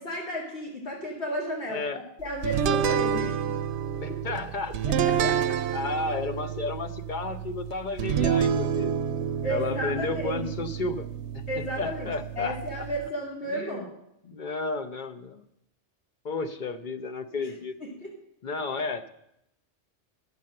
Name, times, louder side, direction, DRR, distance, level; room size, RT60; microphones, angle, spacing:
voice 1, 0.0-3.4 5.0-5.6 9.4-10.4 11.5-13.9 17.4-17.5 17.8-18.1, equal, 65° left, -3 dB, 2.3 m, -33 dB
voice 2, 1.7-2.0 4.0-4.8 5.7-9.0 9.4-11.1 11.3-12.6 13.5-13.8 14.2-15.4 16.2-17.7 18.4-19.1, left 3 dB, 45° left, 8 dB, 0.8 m, -32 dB
sound 1, 2.4-13.1, right 8 dB, 70° right, 0.8 m, -29 dB
11.0 x 7.3 x 7.6 m, 0.81 s
omnidirectional pair, 1.2 m